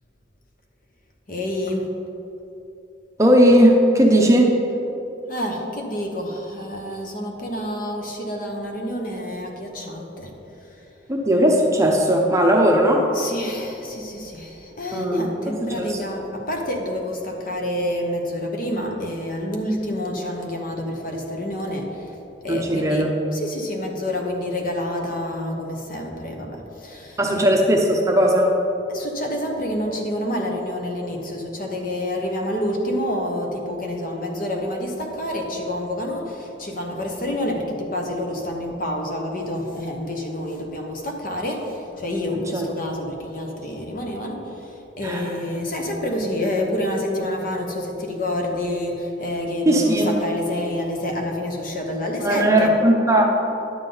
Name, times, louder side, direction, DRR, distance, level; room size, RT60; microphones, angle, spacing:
voice 1, 1.3-1.8 5.3-10.3 13.1-21.9 22.4-23.0 23.3-26.6 26.8-27.5 28.9-41.6 42.0-44.4 45.0-52.7, left 1 dB, 45° left, 1 dB, 1.1 m, -28 dB
voice 2, 3.2-4.5 11.1-13.1 14.9-16.0 22.5-23.1 27.2-28.5 42.3-42.7 45.0-45.4 49.7-50.2 52.2-53.2, equal, 15° right, 0 dB, 0.7 m, -18 dB
10.5 x 7.3 x 4.0 m, 3.0 s
head